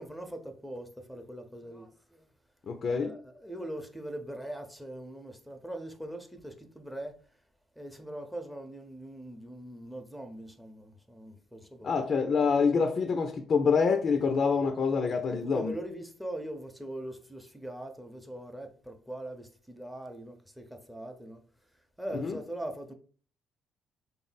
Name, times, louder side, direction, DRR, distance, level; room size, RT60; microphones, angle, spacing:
voice 1, 0.0-2.3 2.9-7.2 7.8-11.9 15.3-21.4 22.0-22.9, right 1 dB, 5° right, 0.7 m, -41 dB
voice 2, 2.7-3.2 11.8-15.7 22.2-22.4, left 5 dB, 55° left, 0.4 m, -26 dB
3.5 x 2.0 x 4.0 m
supercardioid pair, 60°, 0 cm